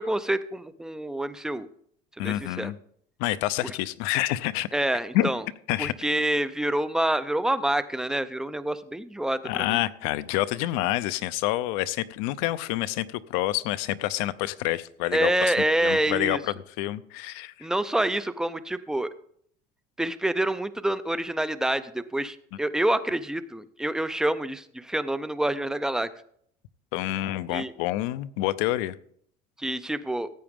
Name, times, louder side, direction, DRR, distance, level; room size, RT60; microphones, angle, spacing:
voice 1, 0.0-1.7 2.2-2.7 3.6-3.7 4.7-5.4 5.8-9.8 15.1-16.4 17.6-19.1 20.0-26.1 27.5-27.7 29.6-30.3, right 1 dB, 5° right, 13 dB, 0.3 m, -27 dB
voice 2, 2.2-2.8 3.2-4.7 5.1-5.3 5.7-5.9 9.4-15.5 15.8-17.7 26.9-28.9, left 15 dB, 80° left, 15 dB, 0.6 m, -28 dB
15.5 x 8.7 x 3.6 m, 0.64 s
cardioid pair, 165°, 20 cm